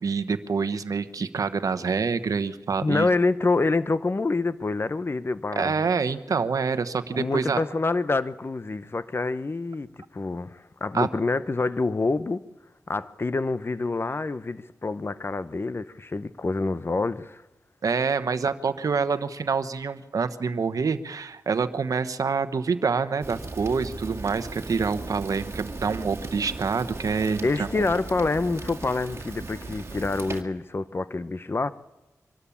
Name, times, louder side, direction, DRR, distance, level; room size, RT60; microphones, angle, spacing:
voice 1, 0.0-3.1 5.6-7.6 10.9-11.1 17.8-27.9, right 5 dB, 75° right, 1.0 m, -26 dB
voice 2, 2.8-5.8 7.1-9.9 10.1-12.4 12.9-17.4 27.4-31.7, left 3 dB, 40° left, 0.9 m, -27 dB
Fire, 23.2-30.4, right 3 dB, 45° right, 2.1 m, -37 dB
24.0 x 13.0 x 8.6 m
cardioid pair, 60°, 6 cm